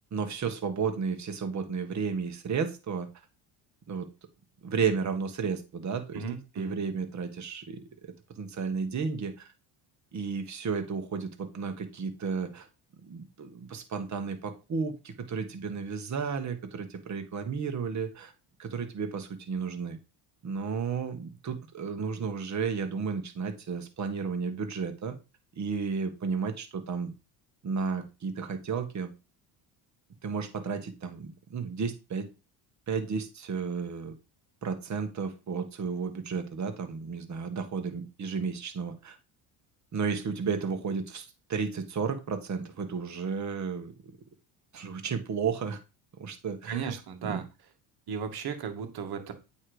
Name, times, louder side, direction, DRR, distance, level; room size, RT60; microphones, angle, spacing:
voice 1, 0.1-3.1 3.9-4.1 4.6-6.2 6.6-7.8 8.3-9.5 10.1-12.7 13.0-18.3 18.6-20.0 20.4-25.2 25.5-27.1 27.6-29.1 30.2-32.3 32.9-34.1 34.6-39.2 39.9-43.9 44.7-45.8 46.2-46.9 47.2-47.4, right 5 dB, 40° right, 6 dB, 1.6 m, -33 dB
voice 2, 6.1-6.8 46.6-47.4 48.1-49.3, right 6 dB, 55° right, 7 dB, 1.8 m, -35 dB
8.6 x 3.2 x 5.0 m, 0.28 s
supercardioid pair, 95°, 45 cm